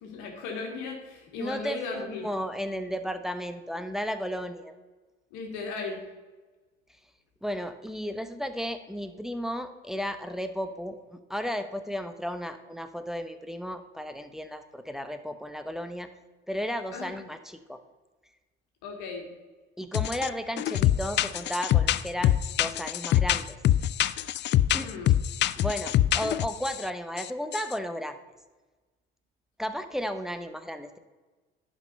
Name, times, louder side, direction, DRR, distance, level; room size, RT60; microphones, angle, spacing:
voice 1, 0.0-2.3 5.3-6.0 16.9-17.1 18.8-19.3 24.8-25.1, left 4 dB, 70° left, 1 dB, 2.0 m, -36 dB
voice 2, 1.4-4.7 7.4-11.0 11.3-16.1 16.5-17.8 19.8-22.3 22.6-23.6 24.7-24.9 25.6-28.2 29.6-31.0, equal, ahead, 8 dB, 0.9 m, -34 dB
sound 1, 19.9-20.3 20.6-26.8 27.2-27.3 27.5-27.7, left 12 dB, 35° left, 0.4 m, -24 dB
10.5 x 5.4 x 5.4 m, 1.3 s
hypercardioid pair, 65°, 32 cm